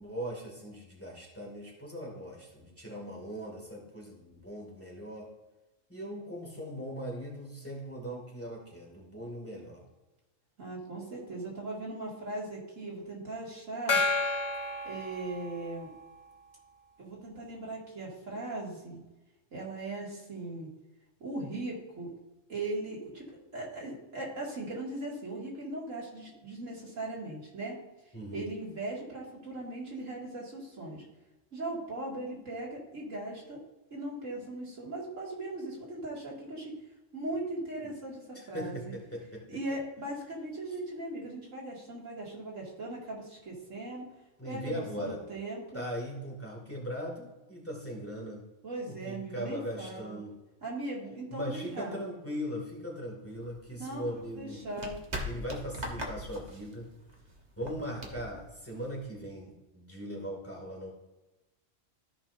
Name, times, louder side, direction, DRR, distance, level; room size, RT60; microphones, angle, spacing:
voice 1, 0.0-5.3 5.9-9.8 28.1-28.5 37.8-37.9 38.5-39.4 44.4-45.2 45.7-48.4 48.9-50.4 51.3-54.7 55.2-56.9 57.6-60.9, equal, 10° left, -2 dB, 2.2 m, -39 dB
voice 2, 10.6-14.0 14.8-15.9 17.0-19.0 19.5-20.7 21.2-22.1 22.5-23.3 23.5-27.8 28.0-31.0 31.5-33.6 33.9-36.7 37.1-38.9 39.5-44.1 44.4-45.8 48.6-50.2 50.6-52.0 53.8-54.0 54.4-55.0, right 2 dB, 85° right, -4 dB, 2.7 m, -39 dB
Gong, 13.9-15.9, left 3 dB, 40° left, 0.8 m, -31 dB
sound 1, 53.3-59.3, equal, 35° right, 1.3 m, -41 dB
14.0 x 5.4 x 2.7 m, 1.0 s
omnidirectional pair, 1.3 m